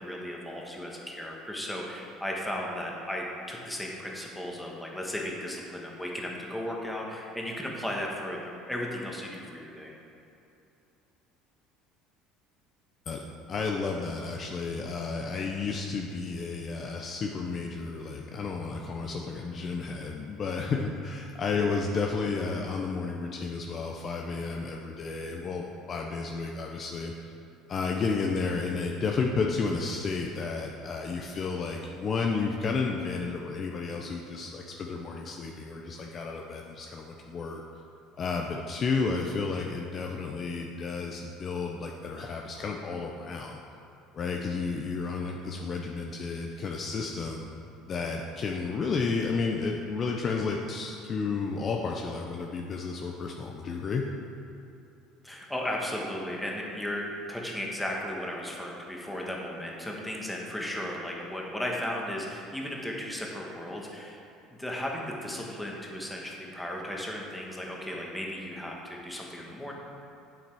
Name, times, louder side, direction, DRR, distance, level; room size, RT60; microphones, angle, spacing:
voice 1, 0.0-9.9 55.2-64.2 64.6-69.7, left 1 dB, 5° left, -2 dB, 1.4 m, -35 dB
voice 2, 13.5-27.3 27.7-37.6 38.2-43.6 44.1-47.5 47.8-54.1, left 4 dB, 35° left, 1 dB, 0.6 m, -32 dB
8.6 x 7.4 x 4.8 m, 2.8 s
cardioid pair, 135°, 0 cm